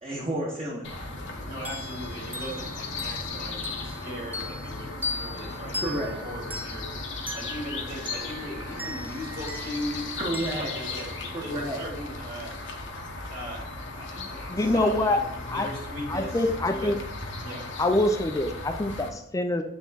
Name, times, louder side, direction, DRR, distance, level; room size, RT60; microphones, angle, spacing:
voice 1, 0.0-1.3 5.8-6.1 10.2-10.7 11.3-11.8, right 1 dB, 30° right, -3 dB, 1.0 m, -31 dB
sound 1, 0.8-19.1, left 3 dB, 75° left, 0.9 m, -37 dB
voice 2, 1.4-10.1 10.6-11.1 11.4-12.5 13.1-16.9 17.4-17.7, equal, 50° right, -3 dB, 2.6 m, -38 dB
sound 2, 1.7-11.9, left 2 dB, 10° right, 0.8 m, -39 dB
voice 3, 14.2-15.2 15.5-15.7 16.1-17.0 17.8-19.6, left 1 dB, 15° left, 6 dB, 0.4 m, -25 dB
8.0 x 3.5 x 4.1 m, 0.77 s
head